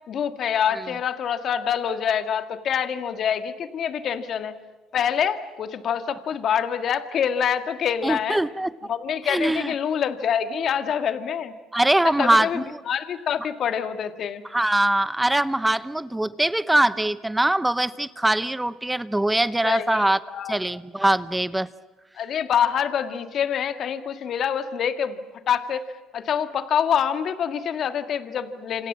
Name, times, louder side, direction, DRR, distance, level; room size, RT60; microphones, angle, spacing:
voice 1, 0.1-4.5 4.9-8.4 8.9-11.5 12.2-14.4 19.6-20.6 22.1-25.2 25.5-25.8 26.1-28.9, left 8 dB, 55° left, 10 dB, 1.8 m, -26 dB
voice 2, 8.0-8.7 9.3-9.7 11.7-12.6 14.5-20.2 20.5-21.7, right 1 dB, 10° right, 16 dB, 0.8 m, -22 dB
27.5 x 26.0 x 7.5 m, 1.2 s
supercardioid pair, 90°, 0 cm